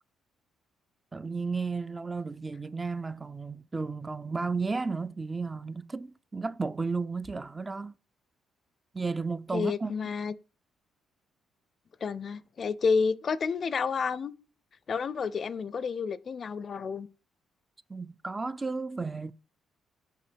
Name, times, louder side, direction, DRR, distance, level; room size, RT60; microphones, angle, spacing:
voice 1, 1.1-7.9 8.9-9.9 17.9-19.3, right 4 dB, 25° right, 0.4 m, -33 dB
voice 2, 9.5-10.3 12.0-14.3 14.9-17.1, left 5 dB, 45° left, 0.5 m, -30 dB
5.6 x 5.5 x 6.1 m
cardioid pair, 90°, 0 cm